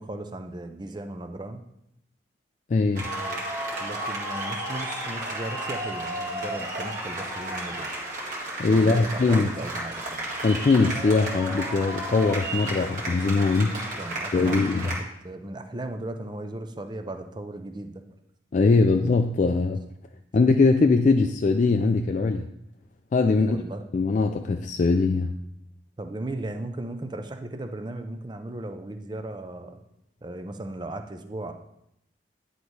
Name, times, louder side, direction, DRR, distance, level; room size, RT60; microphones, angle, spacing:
voice 1, 0.0-1.6 3.0-3.5 3.8-7.9 8.7-10.3 13.6-17.9 23.4-23.8 26.0-29.8 30.2-31.5, right 1 dB, 25° right, 7 dB, 0.6 m, -36 dB
voice 2, 2.7-3.1 8.6-9.5 10.4-13.7 14.3-14.9 18.5-19.8 20.3-22.5 23.1-23.6 23.9-25.4, left 3 dB, 45° left, 5 dB, 0.4 m, -21 dB
sound 1, 2.9-14.9, right 1 dB, 45° right, 2.0 m, -33 dB
9.9 x 4.0 x 4.7 m, 0.80 s
head